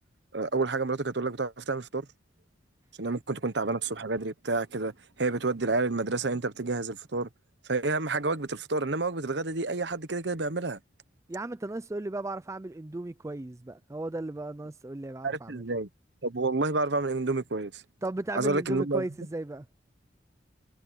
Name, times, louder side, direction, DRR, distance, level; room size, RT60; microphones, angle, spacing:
voice 1, 0.3-2.1 3.0-4.9 5.2-7.3 7.7-10.8 15.2-15.9 16.2-17.8 18.3-19.0, right 3 dB, 60° right, 1.1 m, -29 dB
voice 2, 11.3-15.7 18.0-19.7, right 2 dB, 15° right, 0.4 m, -35 dB
head